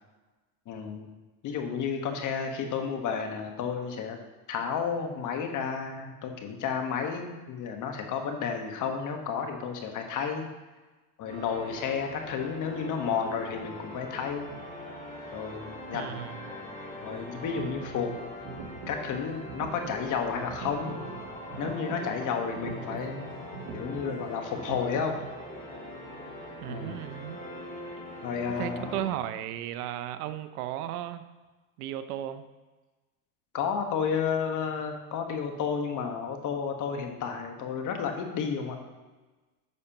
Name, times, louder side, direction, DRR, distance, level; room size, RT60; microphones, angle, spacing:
voice 1, 0.7-1.1 1.4-4.2 4.5-10.5 11.2-14.6 15.3-16.1 17.0-18.1 18.9-21.0 21.6-23.4 23.7-25.2 26.7-27.0 28.2-28.9 33.5-38.8, left 6 dB, 45° left, 4 dB, 1.3 m, -32 dB
sound 1, 11.3-29.1, left 1 dB, 20° left, 2.5 m, -42 dB
voice 2, 15.9-16.5 26.6-27.4 28.6-31.3 31.8-32.4, right 12 dB, 75° right, 11 dB, 0.7 m, -35 dB
sound 2, 17.2-25.3, right 6 dB, 50° right, 1.6 m, -43 dB
10.5 x 6.5 x 2.9 m, 1.2 s
supercardioid pair, 115°, 44 cm